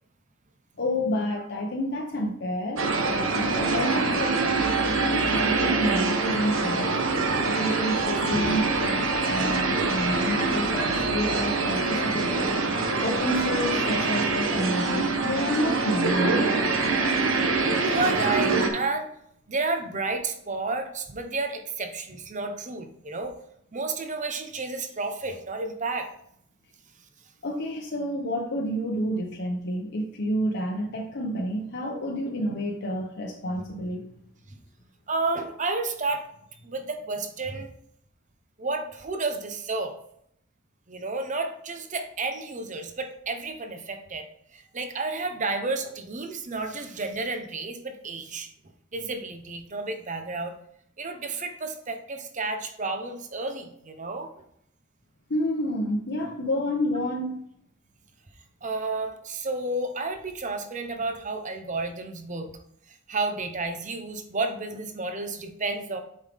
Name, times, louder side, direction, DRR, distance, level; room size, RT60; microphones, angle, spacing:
voice 1, 0.8-7.0 7.4-12.6 13.0-16.6 27.4-34.0 55.3-57.4, equal, 60° left, 0 dB, 0.9 m, -29 dB
sound 1, 2.8-18.7, right 3 dB, 85° right, 1.2 m, -25 dB
voice 2, 17.8-19.1 19.5-23.3 23.7-26.1 34.5-34.6 35.1-36.2 36.6-37.7 38.6-39.9 40.9-44.3 44.5-48.5 48.9-50.5 51.0-54.3 58.6-62.5 62.9-66.0, right 3 dB, 40° right, 6 dB, 0.9 m, -31 dB
7.9 x 5.5 x 3.6 m, 0.70 s
head